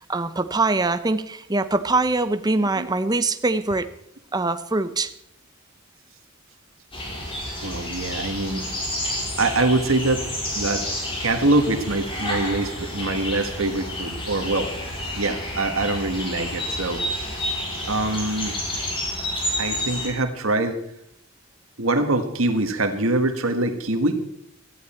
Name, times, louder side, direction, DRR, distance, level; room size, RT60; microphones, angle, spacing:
voice 1, 0.0-3.9 4.3-5.1, right 3 dB, 20° right, 11 dB, 0.7 m, -23 dB
sound 1, 6.9-20.1, left 1 dB, 25° left, 4.7 m, -30 dB
voice 2, 7.6-8.6 9.4-10.2 10.5-10.8 11.2-14.7 15.2-17.0 17.4-17.6 17.9-18.6 19.6-20.8 21.8-24.1, right 2 dB, 80° right, 7 dB, 1.7 m, -24 dB
17.5 x 13.5 x 4.4 m, 0.73 s
head